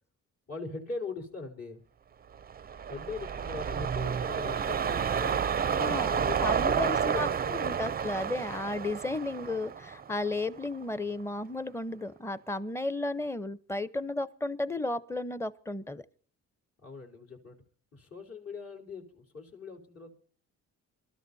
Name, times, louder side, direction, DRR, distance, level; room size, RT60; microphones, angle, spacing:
voice 1, 0.5-1.8 2.9-7.7 16.8-17.6 17.9-20.1, left 4 dB, 50° left, 4.1 m, -41 dB
sound 1, 2.4-10.8 11.2-11.3, right 7 dB, 30° right, 0.6 m, -30 dB
voice 2, 5.8-6.1 6.4-16.0, left 2 dB, 10° left, 0.9 m, -34 dB
27.5 x 13.0 x 2.8 m
cardioid pair, 90°, 30 cm